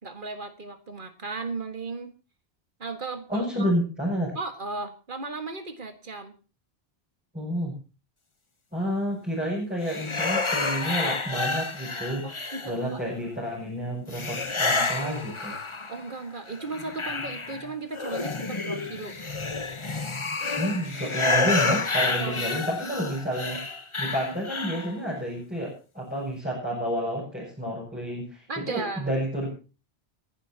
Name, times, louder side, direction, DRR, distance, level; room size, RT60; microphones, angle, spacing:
voice 1, 0.0-2.1 2.8-3.7 4.4-6.3 12.2-13.0 15.9-19.2 22.2-22.5 28.5-29.1, right 3 dB, 50° right, 7 dB, 1.9 m, -36 dB
voice 2, 3.3-4.3 7.3-7.7 8.7-12.3 12.6-15.5 20.6-23.6 24.0-29.5, equal, 10° right, -6 dB, 6.9 m, -30 dB
sound 1, 9.8-13.0 14.1-16.1 16.5-24.9, left 3 dB, 30° left, 1.1 m, -29 dB
29.0 x 11.5 x 2.9 m, 0.35 s
omnidirectional pair, 1.1 m